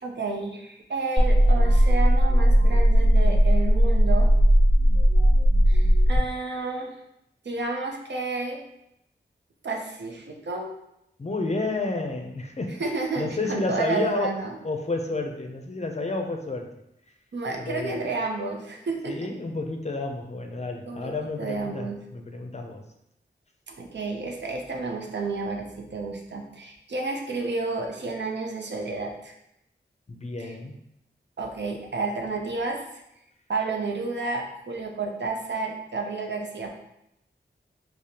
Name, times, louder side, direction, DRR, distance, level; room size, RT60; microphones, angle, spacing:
voice 1, 0.0-4.3 5.7-6.9 7.4-8.6 9.6-10.7 12.8-14.6 17.3-19.3 20.9-22.0 23.7-29.3 30.4-30.5 31.4-32.8 33.5-36.7, right 3 dB, 65° right, 1 dB, 0.6 m, -31 dB
sound 1, 1.2-6.2, equal, 40° right, 1.4 m, -18 dB
voice 2, 11.2-12.8 13.2-16.7 17.6-18.1 19.1-22.8 30.1-30.8, left 3 dB, 35° left, 3 dB, 0.5 m, -30 dB
4.9 x 2.0 x 2.8 m, 0.81 s
wide cardioid pair, 75°, 19 cm